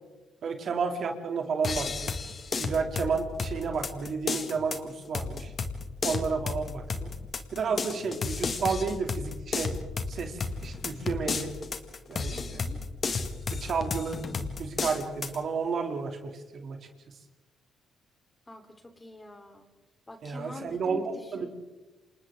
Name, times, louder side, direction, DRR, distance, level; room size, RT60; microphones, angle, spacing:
voice 1, 0.4-2.1 2.6-5.5 6.0-7.1 7.5-9.7 10.1-11.5 12.1-12.6 13.5-14.2 14.6-16.8 20.2-21.0 21.3-21.5, right 5 dB, 60° right, 4 dB, 2.9 m, -31 dB
sound 1, 1.6-15.4, left 4 dB, 45° left, 2.0 m, -33 dB
voice 2, 12.3-12.8 18.5-19.7 20.1-21.5, left 2 dB, 15° left, 4 dB, 3.7 m, -45 dB
29.0 x 26.5 x 3.8 m, 1.1 s
cardioid pair, 90°, 0 cm